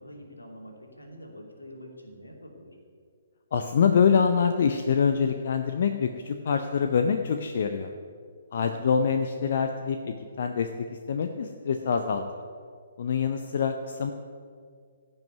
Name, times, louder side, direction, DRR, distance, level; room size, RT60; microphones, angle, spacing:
voice 1, 0.0-2.8 8.6-9.0, equal, 75° left, 1 dB, 2.7 m, -45 dB
voice 2, 3.5-7.9 8.5-12.2 13.0-14.1, left 6 dB, 50° left, 6 dB, 0.7 m, -25 dB
15.5 x 5.7 x 9.4 m, 2.1 s
figure-of-eight pair, 130°, 0 cm